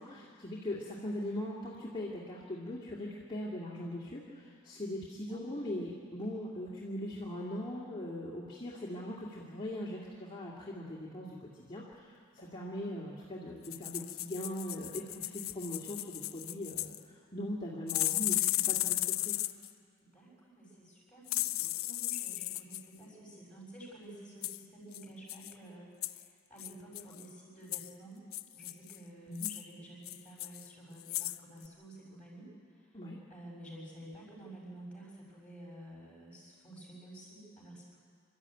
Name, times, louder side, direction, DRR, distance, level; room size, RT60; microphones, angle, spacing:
voice 1, 0.0-19.4 29.3-29.5 32.9-33.2, left 1 dB, 25° left, -5 dB, 2.1 m, -40 dB
voice 2, 5.2-5.6 6.1-6.2 12.3-13.0 20.0-28.2 28.5-33.0 33.3-38.0, right 1 dB, 5° left, -3 dB, 6.3 m, -51 dB
sound 1, 13.6-17.0 17.9-19.7 21.3-22.8 24.4-24.6 24.9-25.0 25.3-25.5 26.0-26.2 26.6-27.2 27.7-27.9 28.3-29.0 29.3-29.6 30.0-30.7 31.0-31.4 31.6-31.7, left 17 dB, 75° left, 0.5 m, -35 dB
27.0 x 13.0 x 9.0 m, 2.1 s
head